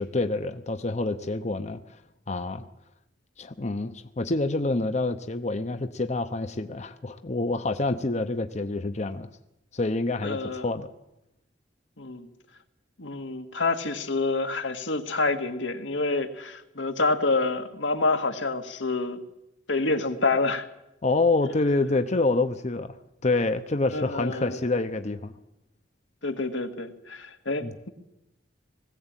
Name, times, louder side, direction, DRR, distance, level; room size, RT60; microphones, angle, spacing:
voice 1, 0.0-2.0 2.3-2.7 3.4-9.3 9.7-10.9 21.0-23.0 23.2-25.3 27.6-27.7, left 2 dB, 40° left, 9 dB, 0.8 m, -27 dB
voice 2, 10.2-10.7 12.0-12.3 13.0-19.2 19.7-20.6 23.9-24.6 26.2-27.9, left 3 dB, 85° left, 6 dB, 1.9 m, -27 dB
20.0 x 15.5 x 9.0 m, 0.89 s
head